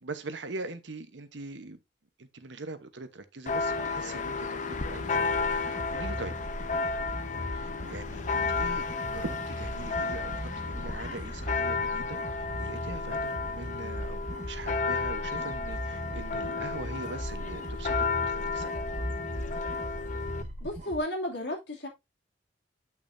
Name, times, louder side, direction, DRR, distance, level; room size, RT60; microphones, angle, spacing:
voice 1, 0.0-1.8 2.2-6.3 7.5-8.9 9.1-17.9 18.3-18.7, right 3 dB, 90° right, 1.1 m, -42 dB
Church bell, 3.5-20.4, left 4 dB, 45° left, 0.8 m, -32 dB
sound 1, 4.6-21.0, equal, 40° right, 1.8 m, -39 dB
voice 2, 20.6-21.9, left 1 dB, 75° left, 2.6 m, -33 dB
8.5 x 6.1 x 2.7 m
head